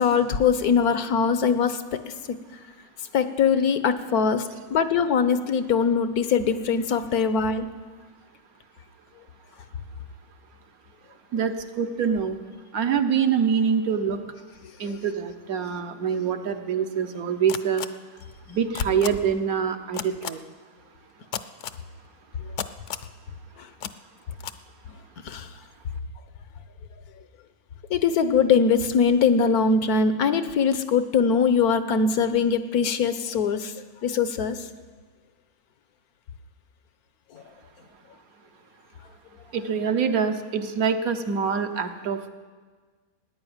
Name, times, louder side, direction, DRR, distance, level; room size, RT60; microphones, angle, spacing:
voice 1, 0.0-1.8 3.1-7.7 14.8-15.0 22.4-22.5 25.2-25.5 27.9-33.7 34.0-34.6 37.3-37.4, left 6 dB, 85° left, 11 dB, 1.4 m, -22 dB
voice 2, 11.3-12.4 12.7-14.2 14.8-17.9 18.5-20.4 39.5-42.3, right 7 dB, 70° right, 7 dB, 1.5 m, -25 dB
sound 1, 17.5-17.9 18.7-19.1 19.9-20.3 21.3-21.8 22.6-23.1 23.8-23.9 24.4-24.6, left 9 dB, 65° left, 0.8 m, -32 dB
16.5 x 10.0 x 8.9 m, 1.4 s
omnidirectional pair, 1.6 m